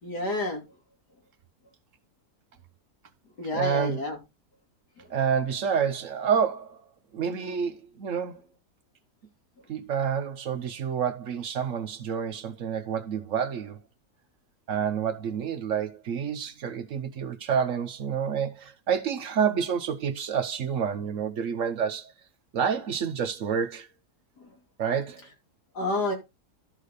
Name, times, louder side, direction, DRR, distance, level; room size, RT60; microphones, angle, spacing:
voice 1, 0.0-0.6 3.4-4.2 5.0-5.1 25.7-26.1, left 2 dB, 90° left, 3.3 m, -29 dB
voice 2, 3.5-4.0 5.1-6.9 7.1-8.4 9.7-13.8 14.7-22.1 22.5-23.9 24.8-25.2, right 7 dB, 60° right, 1.0 m, -28 dB
12.5 x 4.1 x 5.0 m
omnidirectional pair, 1.7 m